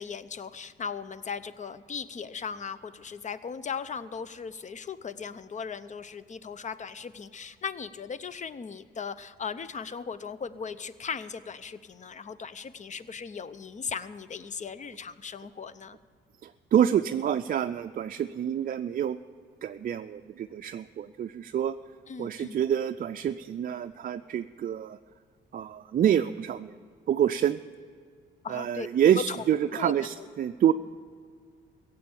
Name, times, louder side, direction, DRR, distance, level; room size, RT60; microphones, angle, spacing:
voice 1, 0.0-16.0 22.1-22.7 28.4-28.9 29.1-29.4 29.7-30.3, left 6 dB, 35° left, 15 dB, 0.7 m, -38 dB
voice 2, 16.4-19.2 19.6-21.8 22.2-25.0 25.5-26.8 27.1-27.6 28.5-30.7, right 9 dB, 45° right, 8 dB, 0.4 m, -27 dB
16.5 x 7.7 x 8.6 m, 2.1 s
cardioid pair, 90°, 20 cm